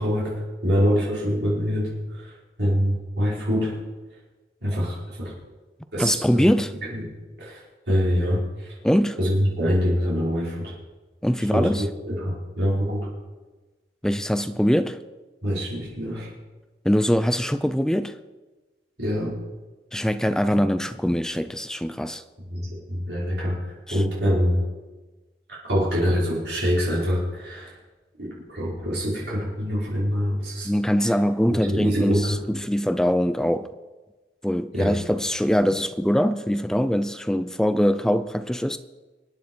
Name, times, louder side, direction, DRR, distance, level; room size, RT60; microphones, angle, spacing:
voice 1, 0.0-2.3 2.6-3.7 4.6-5.3 5.9-6.5 6.9-7.1 7.4-8.8 9.2-10.7 11.5-13.1 15.4-16.3 19.0-19.3 22.5-24.6 25.6-27.7 28.2-30.7 31.0-31.1 31.5-32.4 34.7-34.9, equal, 75° right, 5.0 m, -25 dB
voice 2, 6.0-6.7 8.8-9.2 11.2-11.8 14.0-15.0 16.8-18.2 19.9-22.2 30.6-33.7 34.4-38.8, equal, 5° left, 0.4 m, -22 dB
22.5 x 9.5 x 4.7 m
head